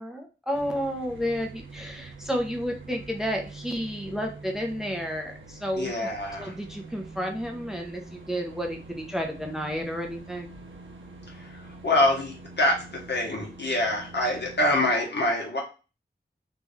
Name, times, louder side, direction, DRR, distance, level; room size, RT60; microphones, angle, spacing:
voice 1, 0.0-5.9 6.4-10.5, equal, ahead, 2 dB, 0.8 m, -31 dB
sound 1, 0.5-14.9, right 3 dB, 90° right, 0.6 m, -45 dB
voice 2, 5.8-6.6 11.3-15.6, left 1 dB, 60° left, -1 dB, 1.4 m, -26 dB
3.2 x 2.5 x 3.5 m, 0.32 s
cardioid pair, 40°, 19 cm